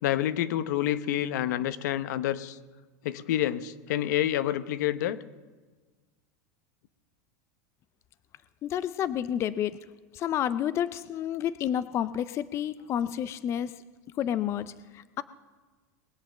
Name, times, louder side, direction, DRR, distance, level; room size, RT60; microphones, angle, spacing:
voice 1, 0.0-2.6 3.0-5.2, left 12 dB, 75° left, 14 dB, 0.8 m, -28 dB
voice 2, 8.6-9.8 10.1-13.7 14.2-15.2, left 10 dB, 30° left, 15 dB, 0.4 m, -30 dB
21.0 x 7.9 x 7.2 m, 1.3 s
supercardioid pair, 145°, 10 cm